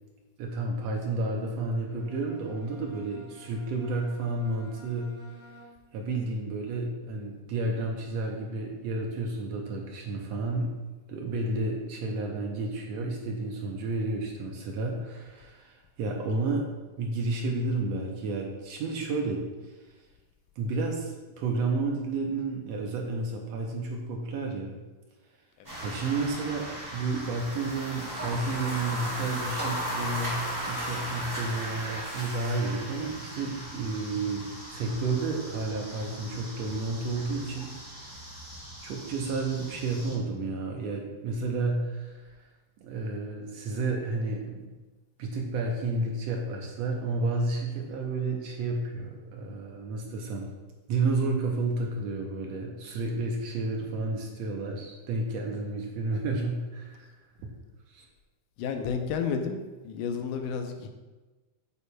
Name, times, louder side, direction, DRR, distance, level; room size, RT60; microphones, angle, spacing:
voice 1, 0.4-5.5 5.9-10.7 11.1-16.7 17.0-19.8 20.6-24.8 25.8-38.1 38.8-42.4 42.8-44.7 45.2-50.5 50.9-57.1 57.4-57.5 57.9-58.1, right 3 dB, 70° right, 0 dB, 1.7 m, -31 dB
Bowed string instrument, 1.8-6.1, right 1 dB, 20° left, 2.2 m, -52 dB
sound 1, 25.6-40.1, equal, 5° right, 2.1 m, -37 dB
voice 2, 58.6-60.9, left 6 dB, 85° left, 5 dB, 2.2 m, -31 dB
8.5 x 8.4 x 2.3 m, 1.2 s
omnidirectional pair, 3.6 m